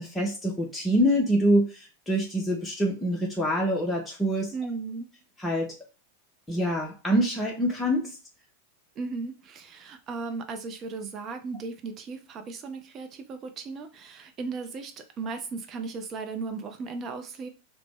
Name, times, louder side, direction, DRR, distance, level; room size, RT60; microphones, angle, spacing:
voice 1, 0.0-4.5 5.4-5.8 6.5-8.2, equal, 10° left, 0.7 m, -25 dB
voice 2, 4.5-5.1 9.0-17.5, right 4 dB, 30° right, 0.5 m, -36 dB
2.9 x 2.0 x 3.4 m
figure-of-eight pair, 90°, 0 cm